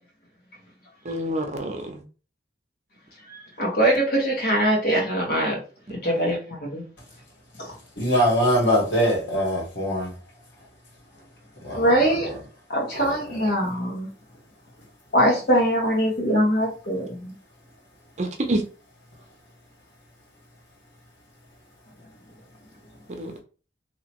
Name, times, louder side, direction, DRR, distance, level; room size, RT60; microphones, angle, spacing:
voice 1, 1.0-2.0 6.0-6.3 18.2-18.6 23.2-23.4, right 1 dB, 40° right, 0.7 m, -28 dB
voice 2, 3.3-5.6 5.9-6.8 7.6-7.7 11.8-12.3 12.7-14.1 15.1-17.3, equal, 55° left, 1.4 m, -22 dB
voice 3, 7.9-10.2 11.6-12.4 13.0-13.2, equal, 85° left, 1.7 m, -23 dB
3.0 x 2.8 x 2.9 m
head